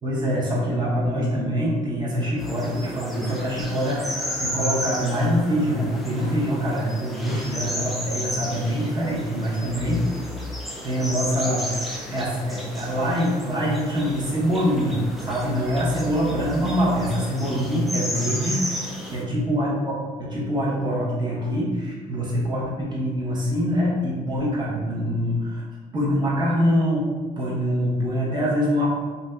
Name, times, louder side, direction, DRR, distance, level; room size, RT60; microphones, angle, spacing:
voice 1, 0.0-10.0 10.8-25.6 25.9-27.1 27.4-28.9, equal, 25° right, -5 dB, 0.9 m, -24 dB
sound 1, 2.4-19.2, equal, ahead, 0.4 m, -33 dB
2.6 x 2.1 x 3.3 m, 1.5 s
cardioid pair, 110°, 17 cm